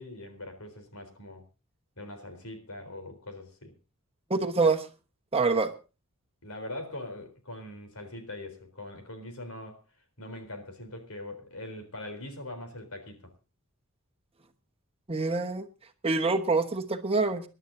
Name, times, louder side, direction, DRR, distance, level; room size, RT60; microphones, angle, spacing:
voice 1, 0.0-1.4 2.0-3.7 6.4-9.8 10.2-13.3, left 1 dB, 85° left, 4.0 m, -42 dB
voice 2, 4.3-4.9 5.3-5.7 15.1-15.7 16.0-17.4, right 3 dB, 25° right, 1.2 m, -25 dB
27.0 x 11.0 x 2.7 m
head